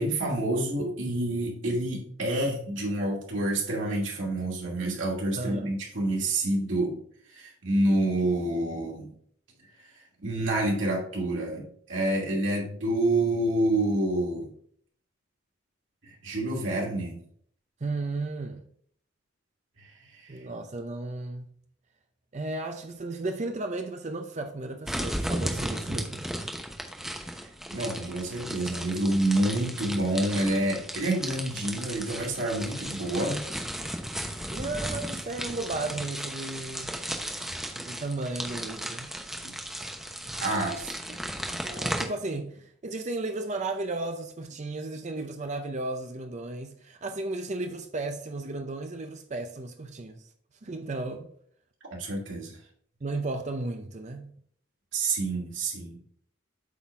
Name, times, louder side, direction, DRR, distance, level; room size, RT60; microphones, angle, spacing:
voice 1, 0.0-7.0 7.3-9.1 9.9-14.5 16.0-17.2 19.8-20.4 27.7-33.4 34.2-34.5 39.4-39.5 40.4-40.7 51.9-52.6 54.9-56.0, right 1 dB, 65° right, 2.5 m, -28 dB
voice 2, 5.4-5.7 17.8-18.6 20.3-21.5 22.3-26.3 34.5-37.0 37.8-39.1 40.5-40.8 41.1-41.2 41.6-50.3 50.6-51.3 53.0-54.3, right 2 dB, 35° right, 0.5 m, -34 dB
sound 1, 24.9-42.0, equal, ahead, 0.9 m, -35 dB
8.3 x 3.9 x 4.7 m
head